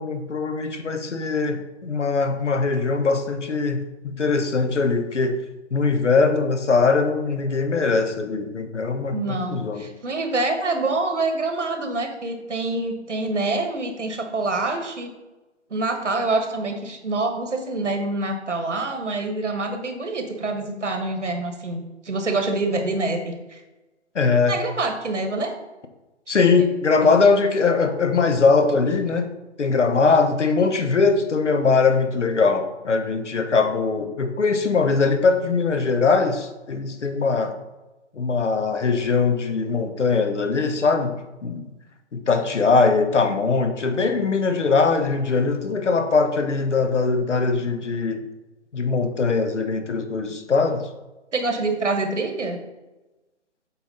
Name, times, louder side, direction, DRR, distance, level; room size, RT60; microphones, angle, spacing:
voice 1, 0.0-5.4 5.7-9.9 24.1-24.6 26.3-29.3 29.6-37.5 38.2-41.7 42.1-48.2 48.7-50.9, left 4 dB, 80° left, 8 dB, 1.0 m, -21 dB
voice 2, 9.1-15.1 15.7-23.6 24.5-25.5 26.3-26.6 51.3-52.6, right 3 dB, 85° right, 5 dB, 1.5 m, -26 dB
8.2 x 4.2 x 4.1 m, 1.1 s
figure-of-eight pair, 145°, 35 cm